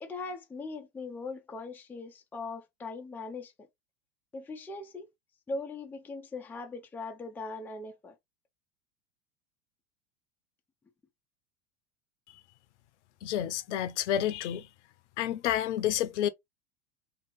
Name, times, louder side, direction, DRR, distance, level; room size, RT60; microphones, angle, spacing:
voice 1, 0.0-3.5 4.3-5.1 5.5-8.1, left 3 dB, 5° left, 0.4 m, -40 dB
voice 2, 13.2-14.7 15.2-16.3, left 11 dB, 65° left, 0.6 m, -29 dB
2.8 x 2.8 x 3.0 m
hypercardioid pair, 85°, 38 cm